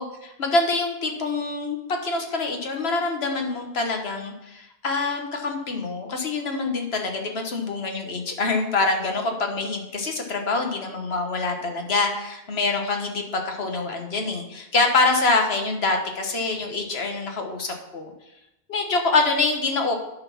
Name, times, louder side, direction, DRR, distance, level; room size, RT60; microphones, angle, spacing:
voice 1, 0.0-18.1 18.7-20.0, left 3 dB, 75° left, 3 dB, 1.4 m, -25 dB
10.5 x 4.1 x 5.8 m, 0.89 s
omnidirectional pair, 1.1 m